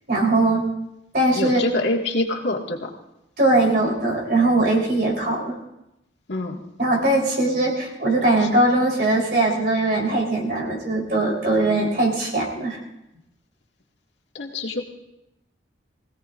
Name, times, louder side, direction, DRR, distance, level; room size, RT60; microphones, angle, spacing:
voice 1, 0.1-0.7 1.1-1.6 3.4-5.6 6.8-12.8, right 2 dB, 55° right, -1 dB, 4.0 m, -20 dB
voice 2, 1.4-2.9 6.3-6.6 8.4-8.5 14.3-14.8, left 2 dB, 75° left, -1 dB, 2.0 m, -25 dB
24.5 x 17.0 x 2.6 m, 0.89 s
head